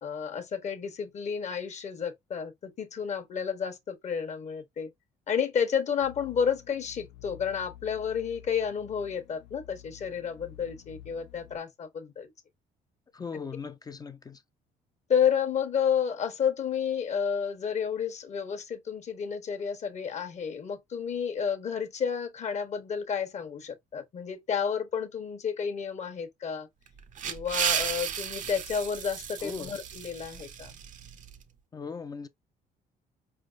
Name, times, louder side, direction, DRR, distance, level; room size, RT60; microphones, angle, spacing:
voice 1, 0.0-4.9 5.3-12.3 15.1-26.7 27.3-30.7, left 7 dB, 45° left, 1.0 m, -31 dB
sound 1, 6.0-11.6, left 12 dB, 85° left, 0.6 m, -50 dB
voice 2, 13.1-14.4 29.4-29.7 31.7-32.3, left 5 dB, 20° left, 0.5 m, -39 dB
sound 2, 26.9-31.4, right 8 dB, 50° right, 0.6 m, -34 dB
4.7 x 3.3 x 2.4 m
cardioid pair, 110°, 17 cm